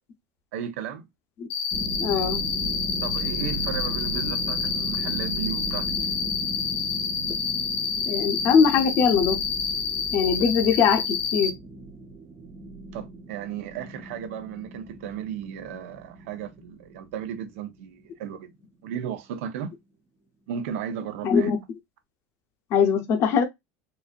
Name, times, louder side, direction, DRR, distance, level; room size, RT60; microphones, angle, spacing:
voice 1, 0.5-1.1 3.0-5.9 12.9-18.5 18.8-19.7 20.5-21.5, right 8 dB, 85° right, 0.8 m, -35 dB
Cricket, 1.5-11.5, left 6 dB, 85° left, 1.3 m, -28 dB
sound 1, 1.7-18.3, right 3 dB, 10° right, 0.5 m, -37 dB
voice 2, 2.0-2.4 8.1-9.4 10.1-11.5 21.2-21.6 22.7-23.4, left 6 dB, 40° left, 0.7 m, -21 dB
4.0 x 2.6 x 2.4 m
cardioid pair, 165°, 7 cm